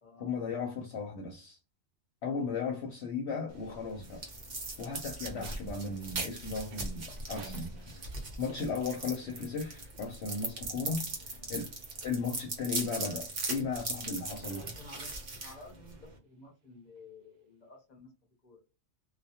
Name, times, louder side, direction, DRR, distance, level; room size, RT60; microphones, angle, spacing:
voice 1, 0.2-1.6 2.2-4.2 4.8-8.1 8.4-11.1 11.5-11.7 12.0-14.6, left 5 dB, 65° left, 0.8 m, -36 dB
sound 1, 3.5-16.2, right 3 dB, 45° right, 0.8 m, -40 dB
sound 2, 4.8-9.7 9.9-10.1 11.1-11.9 12.6-12.7 14.0-15.5, right 4 dB, 75° right, 0.4 m, -51 dB
voice 2, 11.2-11.6 14.6-18.1 18.4-18.6, left 2 dB, 40° left, 0.9 m, -53 dB
2.3 x 2.2 x 2.8 m
omnidirectional pair, 1.3 m